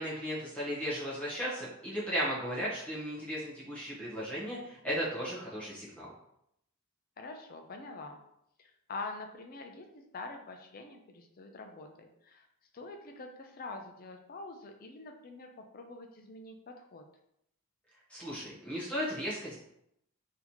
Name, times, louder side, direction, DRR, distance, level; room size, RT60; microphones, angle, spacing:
voice 1, 0.0-6.1 18.1-19.6, equal, 5° left, -8 dB, 0.9 m, -35 dB
voice 2, 7.2-8.2 8.6-12.5 12.7-17.0, left 3 dB, 40° left, 4 dB, 0.5 m, -45 dB
4.0 x 2.8 x 2.9 m, 0.77 s
head